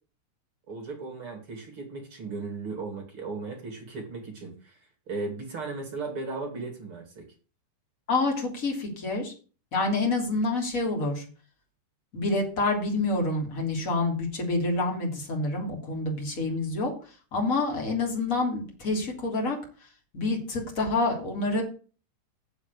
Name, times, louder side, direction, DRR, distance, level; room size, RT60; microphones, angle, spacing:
voice 1, 0.7-4.8 5.1-7.3, right 3 dB, 35° right, 2 dB, 2.5 m, -36 dB
voice 2, 8.1-9.3 9.7-11.2 12.1-16.9 17.3-19.6 20.1-21.6, left 2 dB, 20° left, 1 dB, 2.6 m, -27 dB
7.3 x 7.2 x 8.3 m, 0.38 s
omnidirectional pair, 5.4 m